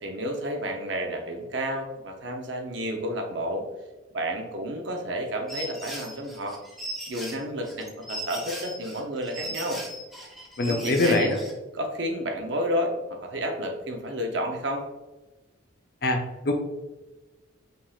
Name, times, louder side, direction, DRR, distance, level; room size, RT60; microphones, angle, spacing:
voice 1, 0.0-3.7 4.1-6.6 7.1-9.8 10.2-10.3 10.6-11.3 11.7-14.8, equal, 60° right, 3 dB, 0.7 m, -31 dB
sound 1, 5.5-11.5, right 1 dB, ahead, 0.7 m, -38 dB
voice 2, 10.6-11.4 16.0-16.5, left 2 dB, 50° left, 4 dB, 0.6 m, -24 dB
5.3 x 3.6 x 2.4 m, 1.1 s
head